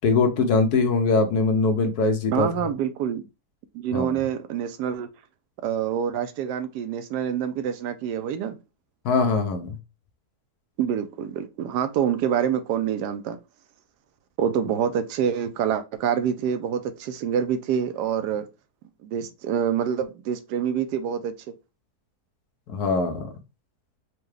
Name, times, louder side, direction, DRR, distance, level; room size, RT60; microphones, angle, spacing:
voice 1, 0.0-2.5 3.9-4.2 9.0-9.7 22.7-23.3, left 4 dB, 75° left, 1.3 m, -22 dB
voice 2, 2.3-3.3 3.7-5.1 5.6-8.6 10.8-13.4 14.4-18.5 19.0-21.3, right 8 dB, 85° right, 1.2 m, -26 dB
4.6 x 2.2 x 3.2 m
omnidirectional pair, 1.7 m